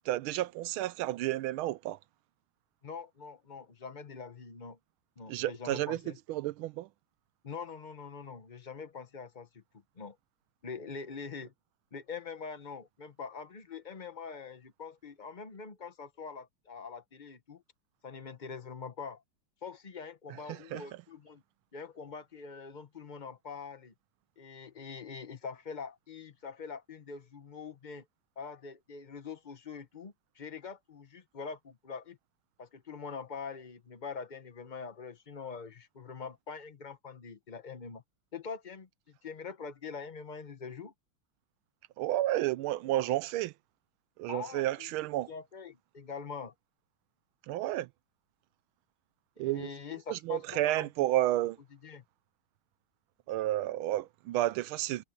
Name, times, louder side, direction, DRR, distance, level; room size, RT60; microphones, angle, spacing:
voice 1, 0.1-2.0 5.3-6.0 6.3-6.9 20.5-20.8 42.0-43.5 44.2-45.3 47.5-47.9 49.4-49.7 50.1-51.6 53.3-55.0, right 15 dB, 75° right, 1.3 m, -31 dB
voice 2, 2.8-4.8 5.2-6.2 7.4-9.6 10.0-10.2 10.6-11.5 11.9-17.6 18.0-19.2 19.6-21.4 21.7-23.9 24.4-28.1 28.4-32.2 32.6-38.0 38.3-40.9 44.3-44.9 45.3-46.5 49.4-50.9 51.8-52.0, left 5 dB, 55° left, 0.5 m, -44 dB
omnidirectional pair, 2.4 m